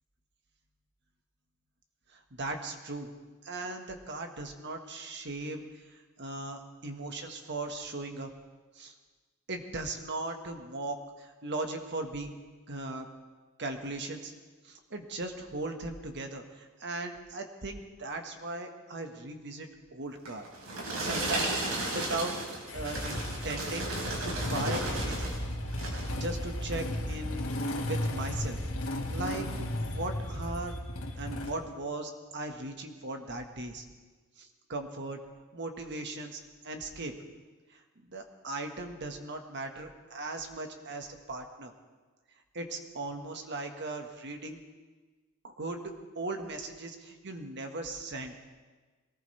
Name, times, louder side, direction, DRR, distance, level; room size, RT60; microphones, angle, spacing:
voice 1, 2.1-3.1 3.4-8.3 8.7-8.9 9.5-12.4 12.7-13.1 13.6-14.3 14.6-20.4 21.0-21.6 21.9-22.3 22.7-23.9 24.2-25.3 26.1-27.5 27.8-28.6 28.9-30.8 31.2-33.8 34.4-35.2 35.5-37.1 37.7-41.7 42.5-44.6 45.4-45.8 46.1-48.3, right 2 dB, 55° right, 5 dB, 1.6 m, -38 dB
sound 1, 20.3-25.4 25.7-26.1 26.7-26.8, right 2 dB, 85° right, 4.7 m, -34 dB
Motorcycle / Engine starting, 22.7-31.5, left 1 dB, 70° left, 2.0 m, -34 dB
22.5 x 19.0 x 3.4 m, 1.3 s
head